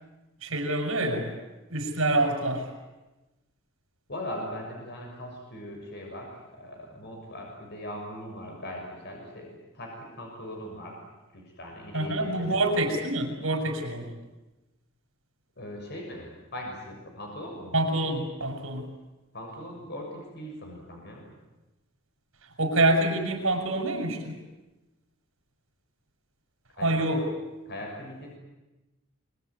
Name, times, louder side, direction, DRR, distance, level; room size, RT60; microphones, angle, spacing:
voice 1, 0.4-1.3 1.7-2.7 11.9-14.1 17.7-18.9 22.6-24.3 26.8-27.2, right 2 dB, 80° right, 3 dB, 6.4 m, -26 dB
voice 2, 4.1-11.0 11.3-12.8 15.6-17.7 19.3-21.2 26.7-27.2 27.6-28.4, left 1 dB, 55° left, 0 dB, 6.5 m, -40 dB
24.5 x 24.0 x 9.5 m, 1.1 s
head